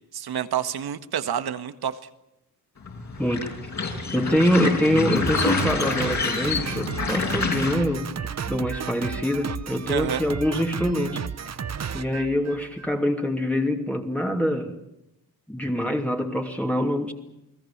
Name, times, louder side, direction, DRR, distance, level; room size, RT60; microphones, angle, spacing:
voice 1, 0.0-2.0 9.9-10.2, right 9 dB, 80° right, 10 dB, 1.7 m, -28 dB
sound 1, 2.9-7.7, left 4 dB, 50° left, 6.4 m, -27 dB
voice 2, 3.2-3.5 4.1-11.2 11.9-14.8 15.5-17.1, equal, 5° left, 1 dB, 2.7 m, -25 dB
Drum kit, 5.2-12.9, right 7 dB, 45° right, 1.0 m, -33 dB
29.5 x 20.0 x 7.4 m, 0.87 s
wide cardioid pair, 120°, 37 cm